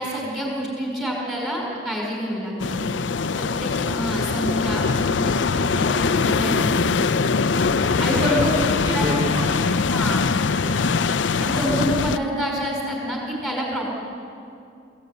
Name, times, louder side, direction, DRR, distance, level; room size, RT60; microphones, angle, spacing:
voice 1, 0.0-2.8 3.3-6.8 8.0-8.5 8.9-9.1 9.9-10.2 11.4-13.9, equal, ahead, -2 dB, 5.2 m, -27 dB
sound 1, 2.6-12.2, left 4 dB, 85° left, 0.6 m, -22 dB
voice 2, 3.5-4.2 7.5-9.8 10.3-10.8, equal, 30° right, -4 dB, 2.7 m, -32 dB
22.0 x 16.0 x 9.4 m, 2.5 s
head